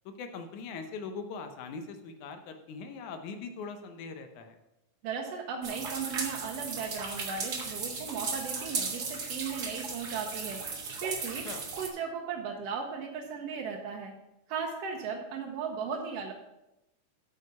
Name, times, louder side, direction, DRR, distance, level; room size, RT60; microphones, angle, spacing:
voice 1, 0.1-4.6 11.4-11.6, left 5 dB, 85° left, 6 dB, 2.3 m, -41 dB
voice 2, 5.0-10.7 11.0-11.5 11.8-14.2 14.5-16.3, right 6 dB, 70° right, 1 dB, 1.7 m, -36 dB
sound 1, 5.6-11.9, right 4 dB, 45° right, 1.5 m, -36 dB
8.7 x 6.5 x 5.4 m, 0.93 s
omnidirectional pair, 3.3 m